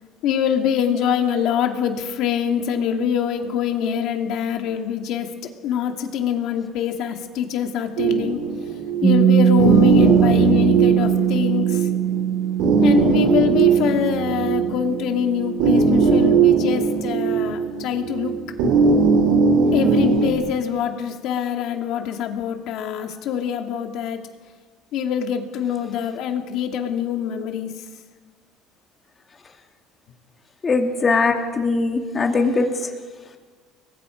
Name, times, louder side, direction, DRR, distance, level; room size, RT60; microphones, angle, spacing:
voice 1, 0.2-8.4 9.0-11.9 12.8-18.5 19.7-24.3 24.9-27.7, left 8 dB, 55° left, 4 dB, 2.5 m, -24 dB
sound 1, 8.0-20.3, right 5 dB, 75° right, 4.6 m, -19 dB
Piano, 9.0-16.3, right 9 dB, 15° right, 2.3 m, -21 dB
voice 2, 30.6-32.7, left 3 dB, 20° left, 3 dB, 2.4 m, -20 dB
30.0 x 22.5 x 5.2 m, 1.5 s
cardioid pair, 160°, 0 cm